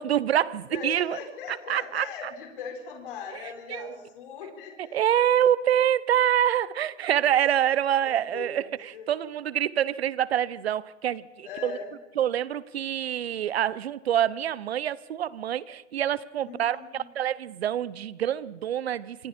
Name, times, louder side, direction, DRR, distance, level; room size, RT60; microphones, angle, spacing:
voice 1, 0.0-1.2 1.5-2.1 3.3-3.4 3.7-4.0 4.9-11.8 12.2-19.3, right 10 dB, 50° right, 0.8 m, -26 dB
voice 2, 0.7-5.3 8.0-8.5 8.9-9.1 11.4-11.9 16.4-17.1, left 6 dB, 40° left, 4.9 m, -40 dB
27.0 x 24.5 x 4.4 m
hypercardioid pair, 180°, 40 cm